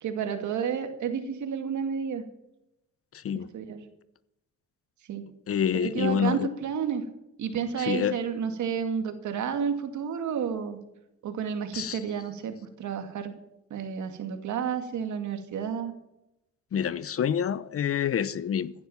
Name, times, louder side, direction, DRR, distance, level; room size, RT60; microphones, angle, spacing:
voice 1, 0.0-2.2 3.3-3.8 5.1-5.2 5.7-7.1 7.4-10.8 11.2-13.3 13.7-15.9, right 7 dB, 70° right, 2.4 m, -31 dB
voice 2, 3.1-3.5 5.5-6.5 7.8-8.2 11.7-12.0 16.7-18.7, left 8 dB, 50° left, 0.8 m, -27 dB
16.0 x 11.0 x 5.7 m
cardioid pair, 90°, 30 cm